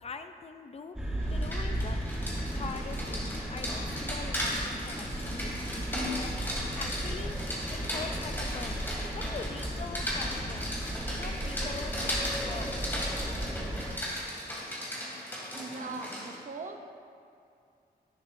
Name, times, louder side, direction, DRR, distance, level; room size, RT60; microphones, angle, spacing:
voice 1, 0.0-2.0 2.5-5.8 6.2-6.3 6.8-10.8 11.1-13.2, left 4 dB, 40° left, 8 dB, 0.5 m, -43 dB
sound 1, 0.9-13.9, right 1 dB, 5° right, 1.2 m, -35 dB
Rain, 1.2-16.4, equal, 15° left, 2.4 m, -37 dB
voice 2, 15.5-16.9, right 4 dB, 55° right, 6 dB, 0.7 m, -40 dB
11.0 x 10.5 x 2.7 m, 2.4 s
wide cardioid pair, 140°, 16 cm